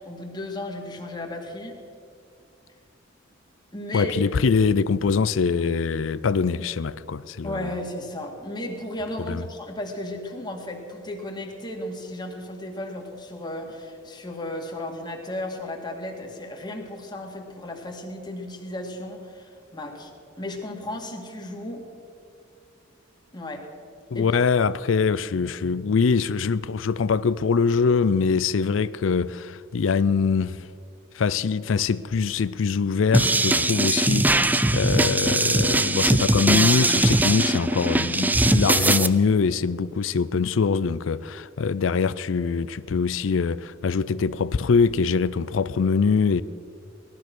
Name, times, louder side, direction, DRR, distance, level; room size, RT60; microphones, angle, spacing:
voice 1, 0.0-1.8 3.7-4.1 7.4-20.1 20.4-21.8 23.3-23.6 24.1-24.3, left 1 dB, 25° left, 2.1 m, -34 dB
voice 2, 3.9-7.7 9.2-9.4 24.1-30.7 31.1-46.4, left 5 dB, 90° left, 0.5 m, -23 dB
sound 1, 33.1-39.1, right 2 dB, 10° right, 0.4 m, -21 dB
18.0 x 12.5 x 6.1 m
head